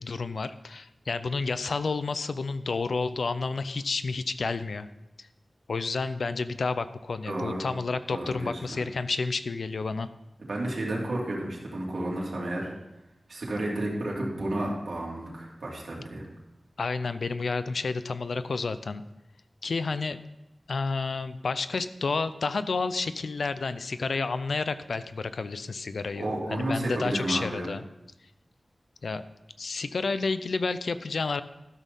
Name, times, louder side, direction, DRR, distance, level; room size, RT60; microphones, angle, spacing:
voice 1, 0.0-4.9 5.7-10.1 16.8-19.0 19.6-20.2 20.7-27.8 29.0-29.2 29.6-31.4, left 4 dB, 80° left, 13 dB, 0.5 m, -30 dB
voice 2, 7.2-7.6 8.1-8.8 10.4-12.7 13.3-16.2 26.1-27.7, right 1 dB, 80° right, -4 dB, 2.8 m, -32 dB
12.5 x 6.4 x 5.4 m, 0.92 s
wide cardioid pair, 95°, 0 cm